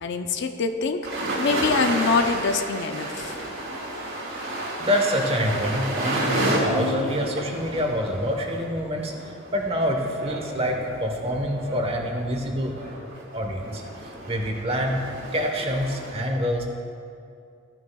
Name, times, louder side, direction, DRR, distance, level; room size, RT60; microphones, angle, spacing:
voice 1, 0.0-3.3, left 4 dB, 55° left, 7 dB, 0.5 m, -25 dB
sound 1, 1.0-16.1, right 1 dB, 70° right, 2.5 m, -31 dB
voice 2, 4.8-12.7 13.3-15.0 15.3-16.6, equal, 30° right, 2 dB, 1.0 m, -26 dB
sound 2, 6.2-7.8, left 3 dB, 35° left, 1.5 m, -32 dB
15.0 x 9.8 x 2.3 m, 2.5 s
head